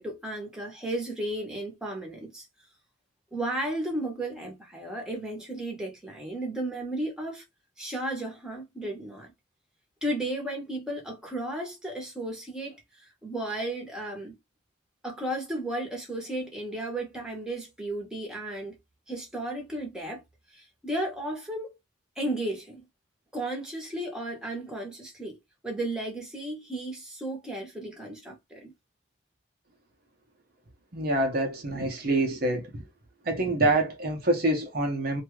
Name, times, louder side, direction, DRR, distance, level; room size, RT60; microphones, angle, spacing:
voice 1, 0.0-2.5 3.3-7.4 7.8-9.3 10.0-14.4 15.0-18.8 19.1-20.2 20.5-21.8 22.2-22.8 23.3-25.3 25.6-28.7, right 1 dB, 5° right, 0.9 m, -34 dB
voice 2, 30.9-32.8 33.2-35.2, right 2 dB, 50° right, 0.7 m, -26 dB
2.7 x 2.3 x 3.0 m
head